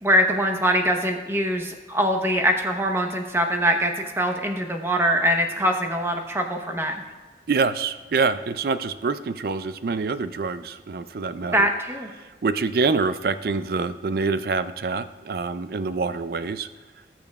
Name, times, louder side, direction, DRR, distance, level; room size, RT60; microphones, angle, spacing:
voice 1, 0.0-7.0 11.5-12.1, equal, 15° right, 4 dB, 0.8 m, -23 dB
voice 2, 7.5-11.7 12.2-16.7, right 4 dB, 55° right, 12 dB, 0.4 m, -26 dB
18.5 x 6.9 x 2.3 m, 1.3 s
head